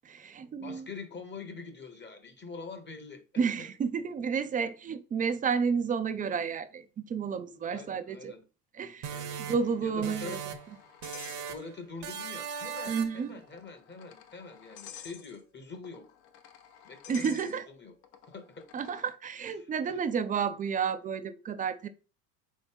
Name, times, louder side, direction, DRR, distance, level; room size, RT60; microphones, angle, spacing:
voice 1, 0.0-0.9 3.4-8.3 8.7-10.4 12.9-13.4 17.1-17.6 18.7-21.9, right 6 dB, 20° right, 0.3 m, -31 dB
voice 2, 0.6-3.7 7.7-8.4 9.1-9.4 9.8-10.4 11.4-16.2 16.8-17.9 18.3-18.7 19.4-20.0, left 4 dB, 20° left, 0.8 m, -45 dB
sound 1, 9.0-10.7 11.0-11.7 12.0-13.3, right 7 dB, 55° right, 0.9 m, -39 dB
sound 2, 9.4-12.0 12.3-12.4 13.3-19.2, left 10 dB, 70° left, 0.8 m, -51 dB
3.9 x 3.2 x 3.4 m
hypercardioid pair, 75°, 49 cm